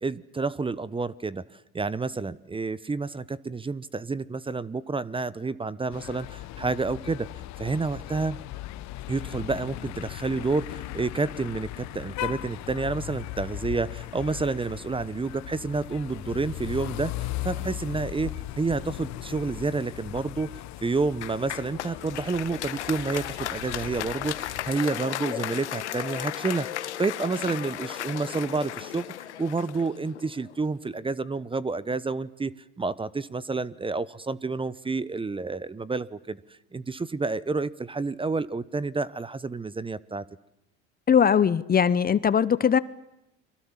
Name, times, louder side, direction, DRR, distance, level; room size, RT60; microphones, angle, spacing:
voice 1, 0.0-1.4 1.7-7.3 7.6-8.4 9.1-20.5 20.8-26.7 27.0-29.1 29.4-32.5 32.8-36.4 36.7-40.2, right 3 dB, 15° right, 19 dB, 0.9 m, -29 dB
sound 1, 5.9-24.7, left 16 dB, 55° left, 1.3 m, -38 dB
Applause, 21.2-30.5, left 13 dB, 90° left, 1.4 m, -35 dB
voice 2, 41.1-42.8, left 7 dB, 25° left, 17 dB, 0.9 m, -20 dB
30.0 x 23.5 x 7.4 m, 0.89 s
hypercardioid pair, 80°, 33 cm